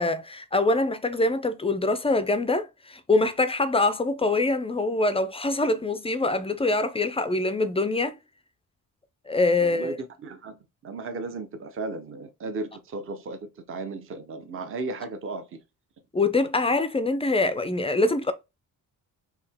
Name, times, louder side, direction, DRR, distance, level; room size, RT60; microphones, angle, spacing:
voice 1, 0.0-8.2 9.3-10.0 16.1-18.3, left 2 dB, 15° left, 0.3 m, -24 dB
voice 2, 9.6-10.6 10.8-15.6, right 3 dB, 35° right, 0.7 m, -35 dB
4.8 x 2.8 x 3.4 m
cardioid pair, 155°, 36 cm